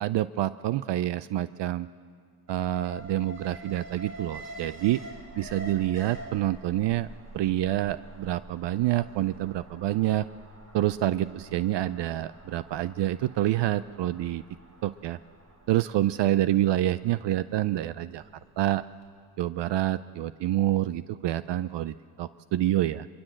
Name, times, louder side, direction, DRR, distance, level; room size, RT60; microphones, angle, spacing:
voice 1, 0.0-1.9 2.5-5.0 5.4-7.1 7.3-10.3 10.7-14.4 14.8-15.2 15.7-18.2 18.6-18.8 19.4-23.1, right 13 dB, 60° right, 15 dB, 0.6 m, -27 dB
Alarm, 2.5-18.6 18.9-19.0, right 1 dB, 30° right, 3.8 m, -47 dB
23.0 x 22.5 x 7.6 m, 2.1 s
cardioid pair, 90°, 47 cm